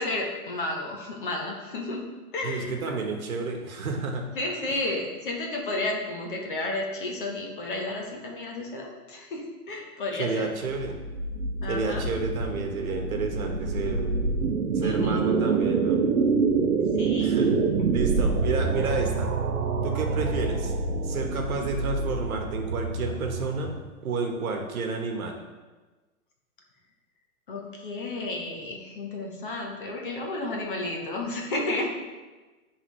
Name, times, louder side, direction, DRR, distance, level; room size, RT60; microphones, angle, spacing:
voice 1, 0.0-2.1 2.3-2.8 4.4-10.5 11.6-12.0 14.8-15.3 17.0-17.4 27.5-31.9, left 2 dB, 35° left, 1 dB, 0.8 m, -32 dB
voice 2, 2.4-4.3 10.2-11.0 11.7-14.1 14.7-16.0 17.2-17.6 17.9-19.3 19.8-20.7 21.0-23.7 24.0-25.4, right 4 dB, 65° right, 3 dB, 1.2 m, -30 dB
sound 1, 10.7-23.9, right 4 dB, 85° right, 0.8 m, -26 dB
9.8 x 3.6 x 3.1 m, 1.2 s
hypercardioid pair, 175°, 45 cm